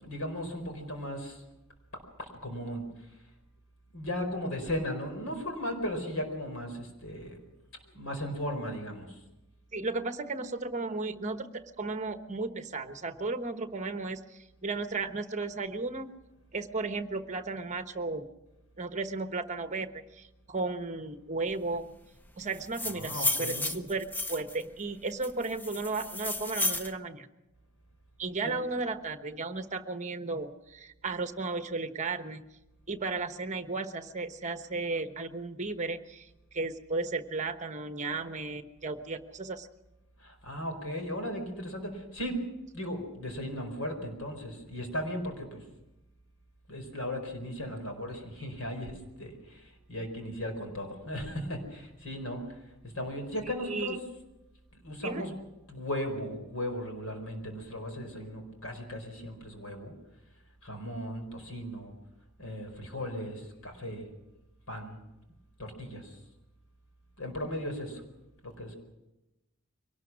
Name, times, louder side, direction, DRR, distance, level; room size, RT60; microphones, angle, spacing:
voice 1, 0.0-1.4 2.2-2.8 3.9-7.4 7.9-9.2 22.8-23.8 28.4-28.5 40.2-42.4 42.7-45.6 46.7-52.4 52.8-54.0 54.8-55.4 55.7-59.9 60.6-61.9 62.4-64.0 64.7-65.0 65.6-66.2 67.2-68.0 68.4-68.8, equal, 70° left, 5 dB, 4.9 m, -36 dB
voice 2, 9.7-11.5 11.8-16.2 16.5-18.3 18.8-21.9 22.4-27.3 28.2-32.4 32.9-39.7 53.6-54.0 55.0-55.2, right 3 dB, 35° right, 8 dB, 1.1 m, -34 dB
sound 1, 22.5-24.6 25.2-26.9, left 2 dB, 10° left, 0.7 m, -32 dB
23.5 x 19.0 x 6.2 m, 0.96 s
head